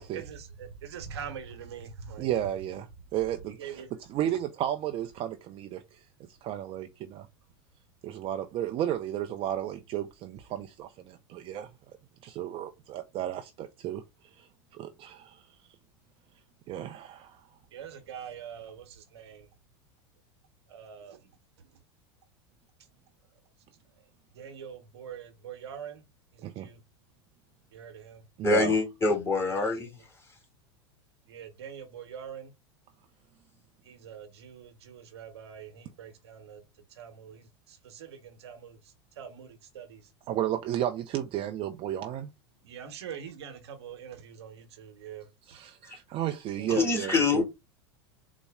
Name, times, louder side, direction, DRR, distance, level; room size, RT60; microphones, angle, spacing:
voice 1, 0.0-2.3 3.6-3.9 17.7-19.5 20.7-21.3 24.3-26.0 26.3-26.8 27.7-28.2 29.6-29.9 31.3-32.5 33.8-36.6 36.9-40.1 42.6-45.3 46.6-46.7, right 8 dB, 80° right, 0.9 m, -44 dB
voice 2, 2.2-3.8 4.1-6.1 6.4-7.3 8.0-11.7 12.2-14.0 14.4-15.8 16.7-17.4 26.4-26.7 28.4-28.8 40.3-42.3 45.5-47.4, right 11 dB, 40° right, 0.4 m, -33 dB
voice 3, 28.4-29.9 45.8-46.0 46.7-47.4, left 4 dB, 15° left, 1.8 m, -25 dB
4.0 x 2.0 x 3.5 m
hypercardioid pair, 100°, 14 cm